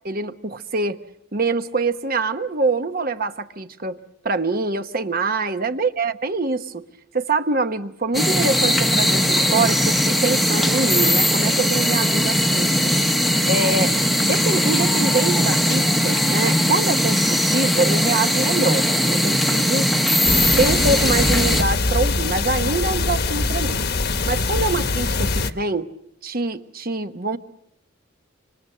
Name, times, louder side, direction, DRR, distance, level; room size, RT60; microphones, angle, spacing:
voice 1, 0.0-1.0 1.3-4.0 4.2-6.9 7.1-13.0 13.4-13.9 14.2-19.9 20.6-23.8 24.2-25.9 26.2-27.4, right 3 dB, 45° right, 9 dB, 1.1 m, -24 dB
sound 1, 8.1-21.6, equal, ahead, 1.0 m, -19 dB
sound 2, 20.2-25.5, left 3 dB, 50° left, 1.2 m, -23 dB
26.5 x 26.0 x 6.7 m, 0.78 s
head